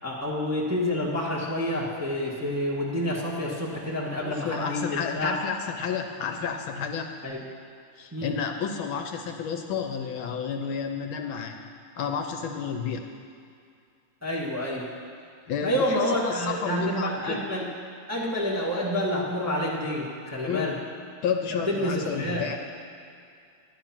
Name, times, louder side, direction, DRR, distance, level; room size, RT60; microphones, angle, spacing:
voice 1, 0.0-5.4 7.2-7.4 8.1-8.4 14.2-14.9 15.6-17.7 18.1-20.8 21.7-22.5, left 1 dB, 10° right, -4 dB, 1.2 m, -28 dB
voice 2, 4.2-7.1 8.0-11.6 12.0-13.0 15.5-17.4 20.4-20.7 21.2-22.6, left 6 dB, 70° left, 5 dB, 1.4 m, -31 dB
11.0 x 11.0 x 5.9 m, 2.3 s
omnidirectional pair, 2.4 m